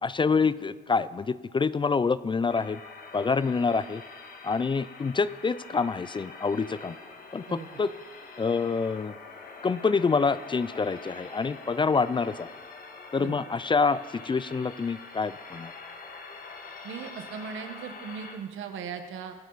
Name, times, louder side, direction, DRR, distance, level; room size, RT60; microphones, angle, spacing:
voice 1, 0.0-2.8 3.1-4.0 4.4-7.0 7.3-7.9 8.4-9.1 9.6-12.5 13.1-15.7, left 4 dB, 25° left, 16 dB, 0.4 m, -26 dB
sound 1, 2.5-18.4, left 4 dB, 45° left, 1.8 m, -45 dB
voice 2, 16.8-19.3, right 7 dB, 80° right, 6 dB, 1.4 m, -38 dB
24.5 x 8.3 x 4.1 m, 1.3 s
cardioid pair, 90°, 20 cm